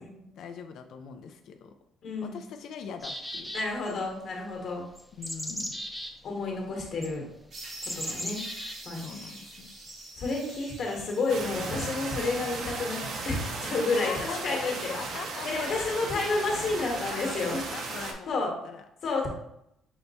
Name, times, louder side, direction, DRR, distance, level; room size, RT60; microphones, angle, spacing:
voice 1, 0.4-1.7 2.2-3.5 5.2-5.8 8.9-9.8 13.9-16.0 16.5-18.8, left 6 dB, 65° left, 6 dB, 0.4 m, -41 dB
voice 2, 2.0-2.4 3.5-4.9 6.2-7.2 7.8-8.4 8.8-9.3 10.2-14.9 15.4-17.6 18.3-18.5 19.0-19.3, left 3 dB, 50° left, 0 dB, 1.2 m, -30 dB
sound 1, 3.0-3.9 5.0-6.1 7.0-7.1 7.8-8.7 9.9-10.0, equal, ahead, 0.5 m, -36 dB
sound 2, 7.5-13.1, right 2 dB, 40° right, 0.9 m, -46 dB
sound 3, 11.3-18.1, right 3 dB, 65° right, 0.7 m, -36 dB
5.6 x 2.2 x 4.0 m, 0.80 s
cardioid pair, 150°, 0 cm